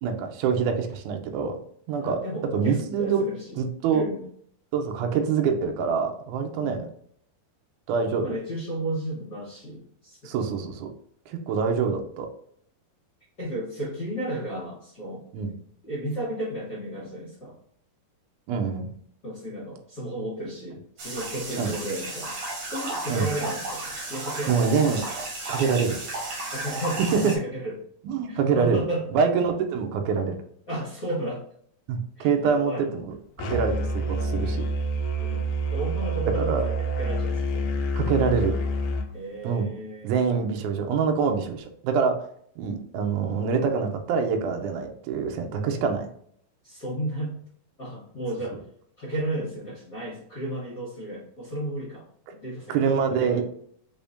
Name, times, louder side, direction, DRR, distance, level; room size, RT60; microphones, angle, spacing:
voice 1, 0.0-1.6 1.9-2.2 2.5-3.2 3.6-4.0 4.7-6.8 7.9-8.2 10.2-10.9 11.3-12.3 15.3-15.5 18.5-18.9 21.6-21.7 23.1-23.3 24.5-25.0 25.5-26.0 28.0-28.8 29.1-30.3 31.9-34.6 36.4-36.6 37.9-38.6 39.4-39.7 40.0-42.1 42.6-46.1 52.7-53.4, right 6 dB, 90° right, 4 dB, 1.7 m, -25 dB
voice 2, 2.0-3.6 3.9-4.2 6.5-6.9 8.2-10.5 13.4-15.2 15.8-17.6 19.2-22.3 22.6-24.7 26.5-27.8 28.3-29.0 30.7-31.4 32.2-32.9 33.5-33.9 35.2-37.7 39.1-40.2 46.6-47.3 47.8-48.6 49.0-52.1 52.4-53.4, right 1 dB, 60° left, -7 dB, 0.9 m, -33 dB
sound 1, 21.0-27.4, right 2 dB, 60° right, 1.9 m, -33 dB
Musical instrument, 33.4-39.1, right 1 dB, 85° left, 1.7 m, -27 dB
5.3 x 3.5 x 2.6 m, 0.63 s
omnidirectional pair, 4.4 m